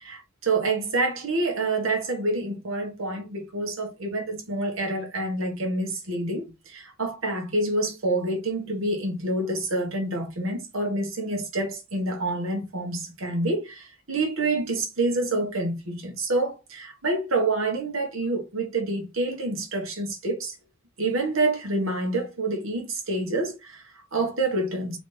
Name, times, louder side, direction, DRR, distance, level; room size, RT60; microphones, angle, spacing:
voice 1, 0.0-20.6 21.0-25.0, right 2 dB, 65° right, 1.5 m, -27 dB
4.1 x 3.1 x 3.3 m
head